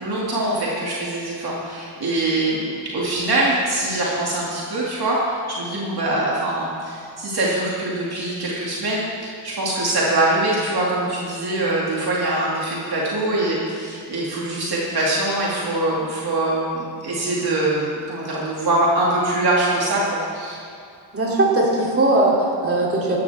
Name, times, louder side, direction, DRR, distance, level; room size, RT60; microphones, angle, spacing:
voice 1, 0.0-20.6, right 2 dB, 50° right, -5 dB, 2.4 m, -23 dB
voice 2, 21.1-23.2, right 2 dB, 30° right, -4 dB, 2.9 m, -19 dB
14.5 x 12.0 x 3.5 m, 2.4 s
cardioid pair, 100°, 47 cm